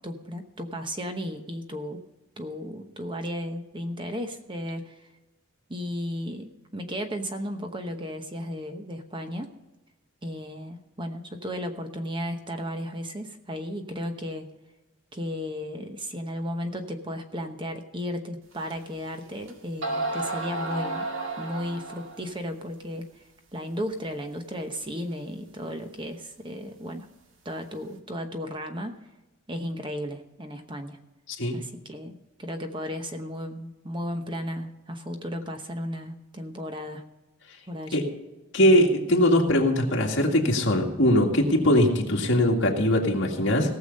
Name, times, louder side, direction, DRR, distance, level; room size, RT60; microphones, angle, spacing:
voice 1, 0.0-2.0 2.4-5.1 5.7-9.5 10.2-14.5 15.1-21.1 21.4-23.2 23.5-27.1 27.4-29.1 29.5-31.0 31.5-37.0 37.7-38.0, equal, 25° right, 6 dB, 0.9 m, -34 dB
sound 1, 18.7-18.8 19.5-19.6 19.8-22.3, right 2 dB, 70° right, 1.7 m, -31 dB
voice 2, 38.5-43.8, left 1 dB, 60° left, 0 dB, 2.1 m, -21 dB
18.0 x 7.0 x 5.4 m, 1.1 s
head